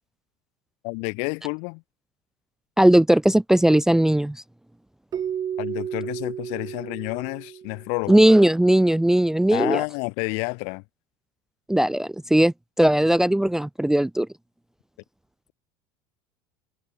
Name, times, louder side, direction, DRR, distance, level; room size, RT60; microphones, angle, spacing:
voice 1, 0.8-1.8 5.6-8.2 9.5-10.8, left 36 dB, 70° left, 1.3 m, -29 dB
voice 2, 2.8-4.4 8.1-9.8 11.7-14.3, right 1 dB, 5° right, 0.4 m, -18 dB
Keyboard (musical), 5.1-8.0, right 9 dB, 35° right, 1.2 m, -32 dB
supercardioid pair, 110°, 12 cm